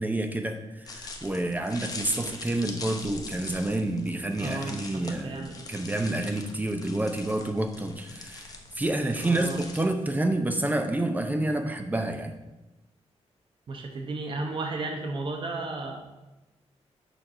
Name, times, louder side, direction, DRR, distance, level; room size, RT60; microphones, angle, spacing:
voice 1, 0.0-12.3, right 1 dB, 15° right, 6 dB, 0.6 m, -29 dB
sound 1, 0.9-9.8, left 3 dB, 35° left, 0.8 m, -42 dB
voice 2, 4.4-5.5 9.2-9.6 13.7-16.0, right 3 dB, 45° right, 3 dB, 0.9 m, -34 dB
6.6 x 4.6 x 5.6 m, 1.0 s
wide cardioid pair, 150°, 12 cm